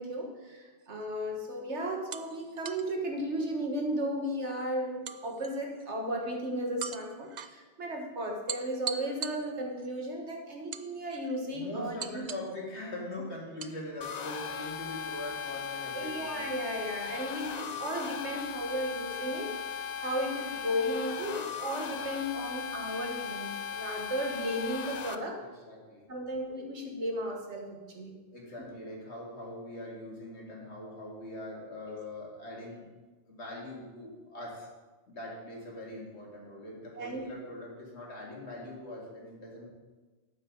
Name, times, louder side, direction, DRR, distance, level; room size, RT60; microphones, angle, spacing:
voice 1, 0.0-12.3 15.9-25.4 26.1-28.2 28.6-28.7 31.9-32.0 37.0-37.3, equal, 75° right, 1 dB, 2.0 m, -35 dB
sound 1, 0.8-1.0 2.1-2.9 5.1-5.9 6.8-7.5 8.5-9.9 10.7-11.4 12.0-12.6 13.6-13.8, right 8 dB, 55° right, 0.5 m, -41 dB
voice 2, 11.5-16.4 25.4-26.1 28.3-32.9 33.3-34.7 35.1-39.7, left 1 dB, 70° left, -3 dB, 2.6 m, -42 dB
sound 2, 14.0-25.2, left 7 dB, 50° left, 0.6 m, -38 dB
12.0 x 9.1 x 4.0 m, 1.3 s
omnidirectional pair, 1.2 m